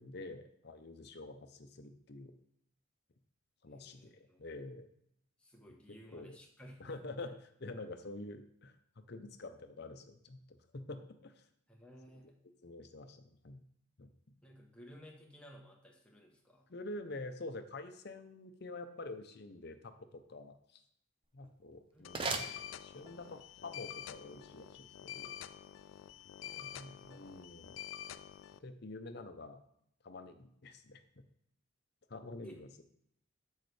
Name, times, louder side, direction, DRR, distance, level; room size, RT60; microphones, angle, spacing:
voice 1, 0.0-2.3 3.6-4.9 6.1-6.4 6.8-7.3 7.6-11.5 12.6-13.6 14.0-14.1 16.7-20.8 21.3-22.5 22.8-25.3 27.1-27.8 28.6-29.6 30.0-31.2 32.1-32.8, left 2 dB, 55° left, 8 dB, 0.7 m, -47 dB
voice 2, 3.7-4.4 5.4-7.3 11.7-12.4 14.4-16.7 21.9-22.4 26.4-27.3 32.4-32.6, equal, 5° left, -1 dB, 1.1 m, -56 dB
sound 1, 21.2-23.3, right 3 dB, 25° right, 0.5 m, -41 dB
sound 2, 22.0-28.6, left 10 dB, 70° left, 0.3 m, -48 dB
8.0 x 6.4 x 3.3 m, 0.71 s
head